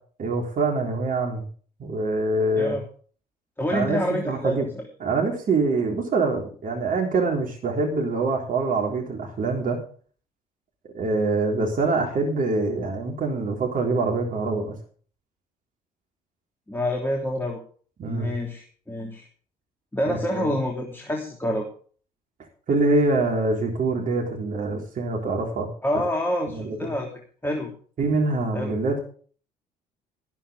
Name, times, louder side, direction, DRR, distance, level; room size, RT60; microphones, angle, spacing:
voice 1, 0.2-1.4 1.8-2.8 3.7-4.6 5.0-9.8 10.9-14.8 18.0-18.3 20.1-20.6 22.7-25.7 26.5-26.8 28.0-29.0, right 3 dB, 45° right, 1 dB, 3.6 m, -25 dB
voice 2, 3.6-4.9 16.7-17.6 18.0-19.3 19.9-21.7 25.8-27.1 27.4-27.7 28.5-28.7, left 1 dB, 10° left, 0 dB, 3.2 m, -27 dB
14.0 x 13.0 x 3.7 m, 0.44 s
figure-of-eight pair, 50°, 20 cm